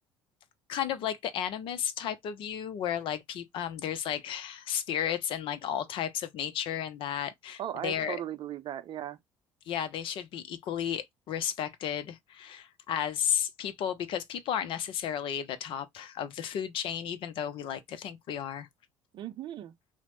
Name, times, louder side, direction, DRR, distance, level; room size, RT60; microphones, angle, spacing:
voice 1, 0.7-8.2 9.7-18.7, left 9 dB, 60° left, 0.5 m, -33 dB
voice 2, 7.6-9.2 19.1-19.7, right 11 dB, 50° right, 0.5 m, -37 dB
2.9 x 2.1 x 2.9 m
hypercardioid pair, 60°, 10 cm